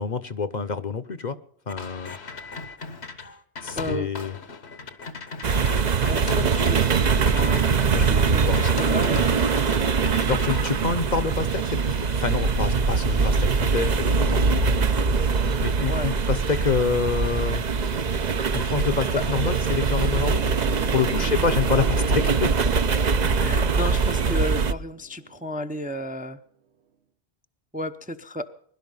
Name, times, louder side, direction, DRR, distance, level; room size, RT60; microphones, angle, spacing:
voice 1, 0.0-1.4 1.7-2.2 3.6-4.4 7.9-8.6 10.3-14.5 15.6-17.6 18.5-20.4 20.9-22.5, left 5 dB, 45° left, 11 dB, 0.9 m, -27 dB
sound 1, 1.7-8.1 8.5-9.8 10.1-10.6, left 5 dB, 80° left, 1.6 m, -37 dB
voice 2, 3.8-4.1 6.1-7.6 8.0-9.2 15.9-16.1 21.2-22.0 23.0-23.1 23.4-26.4 27.7-28.5, left 1 dB, 10° right, 6 dB, 0.6 m, -33 dB
sound 2, 5.4-24.7, right 5 dB, 45° right, 0.8 m, -22 dB
sound 3, 20.3-25.6, right 7 dB, 80° right, 1.2 m, -40 dB
21.5 x 11.5 x 5.5 m, 0.65 s
omnidirectional pair, 1.1 m